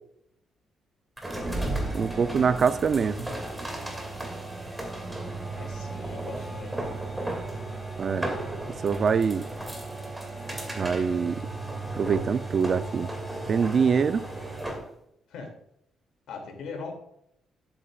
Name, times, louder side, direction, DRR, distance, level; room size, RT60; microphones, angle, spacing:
sound 1, 1.2-14.9, right 2 dB, 10° right, 2.3 m, -34 dB
voice 1, 1.9-3.3 8.0-8.3 8.8-9.5 10.7-11.4 12.0-13.1 13.5-14.2, right 6 dB, 50° right, 0.5 m, -24 dB
voice 2, 5.6-6.9 15.3-15.5 16.3-17.0, left 4 dB, 75° left, 2.6 m, -40 dB
11.0 x 8.7 x 2.4 m
cardioid pair, 90°, 0 cm